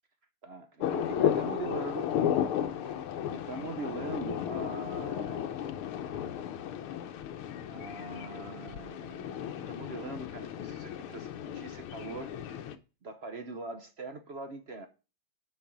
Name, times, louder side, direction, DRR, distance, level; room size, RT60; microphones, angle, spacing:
voice 1, 0.4-2.5 2.9-5.5 7.6-12.3 13.0-14.9, right 3 dB, 60° right, 0.6 m, -42 dB
sound 1, 0.8-12.8, left 9 dB, 85° left, 1.7 m, -34 dB
6.9 x 5.5 x 7.3 m
omnidirectional pair, 2.3 m